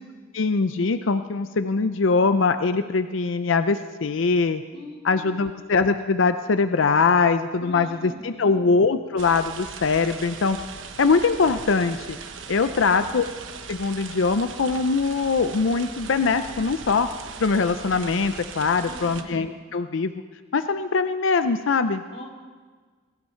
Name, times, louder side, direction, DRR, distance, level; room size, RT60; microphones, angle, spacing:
voice 1, 0.3-4.6 5.0-10.6 11.0-12.2 12.5-13.2 13.7-17.1 17.4-20.1 20.5-22.0, left 4 dB, 85° left, 10 dB, 0.6 m, -22 dB
voice 2, 4.7-5.5 7.6-8.5 12.8-13.1 18.8-19.3 22.1-22.3, equal, 30° left, -1 dB, 2.9 m, -42 dB
sound 1, 9.2-19.2, right 5 dB, 85° right, 1.0 m, -39 dB
22.0 x 14.0 x 4.5 m, 1.5 s
head